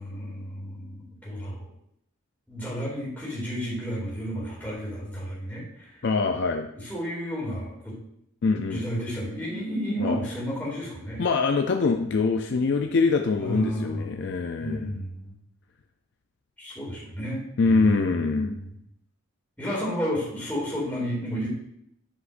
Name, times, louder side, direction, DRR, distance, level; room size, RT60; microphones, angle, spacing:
voice 1, 0.0-1.6 2.5-5.9 6.8-8.0 8.7-11.2 13.4-14.2 14.6-15.3 16.6-18.7 19.6-21.5, equal, 10° left, -6 dB, 2.5 m, -32 dB
voice 2, 6.0-6.7 8.4-8.9 10.0-10.2 11.2-15.0 17.6-18.6, left 4 dB, 50° left, 5 dB, 0.4 m, -24 dB
10.0 x 4.8 x 2.5 m, 0.74 s
head